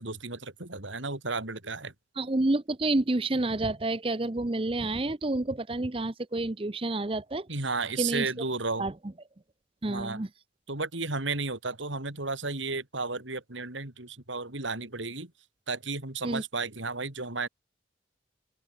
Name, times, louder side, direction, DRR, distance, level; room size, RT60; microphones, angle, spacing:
voice 1, 0.0-1.9 7.5-8.9 9.9-10.2 10.7-15.3 15.7-17.5, right 3 dB, 85° right, 3.7 m, -33 dB
voice 2, 2.2-7.5 8.0-8.3 8.8-8.9 9.8-10.3 16.2-16.4, right 2 dB, 30° right, 0.7 m, -29 dB
open air
head